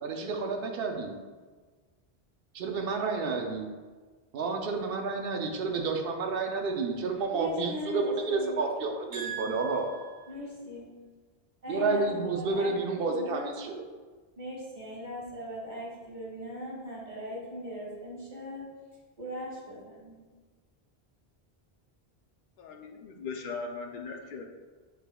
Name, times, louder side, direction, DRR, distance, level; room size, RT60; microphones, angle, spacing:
voice 1, 0.0-1.1 2.5-3.7 4.3-9.9 11.7-13.8, right 4 dB, 65° right, 3 dB, 0.8 m, -30 dB
voice 2, 7.3-8.6 9.1-10.9 11.6-13.5 14.4-18.6 19.2-20.2, equal, 50° right, -6 dB, 1.7 m, -39 dB
voice 3, 22.6-24.4, left 4 dB, 60° left, 2 dB, 0.6 m, -39 dB
6.7 x 3.4 x 2.2 m, 1.4 s
omnidirectional pair, 1.0 m